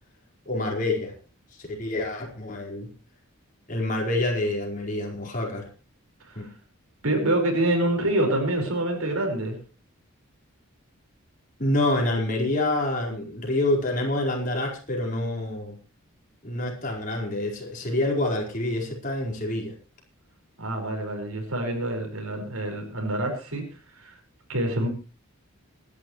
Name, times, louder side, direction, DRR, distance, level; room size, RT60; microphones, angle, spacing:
voice 1, 0.4-1.1 1.5-2.9 3.7-5.7 6.3-6.5 11.6-15.8 16.4-19.7, left 1 dB, 35° left, -1 dB, 4.7 m, -27 dB
voice 2, 7.0-9.6 20.6-24.2 24.5-24.9, right 1 dB, 80° right, 2 dB, 5.1 m, -26 dB
26.5 x 11.0 x 3.2 m, 0.34 s
head